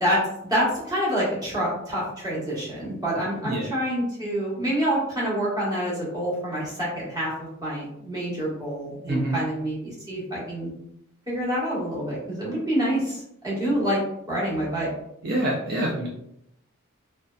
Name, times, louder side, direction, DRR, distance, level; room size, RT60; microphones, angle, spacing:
voice 1, 0.5-10.7 11.3-14.0 14.3-14.9, equal, 20° right, -7 dB, 1.0 m, -27 dB
voice 2, 9.1-9.4 15.2-16.1, right 1 dB, 50° right, -4 dB, 0.4 m, -26 dB
2.7 x 2.1 x 2.3 m, 0.77 s
head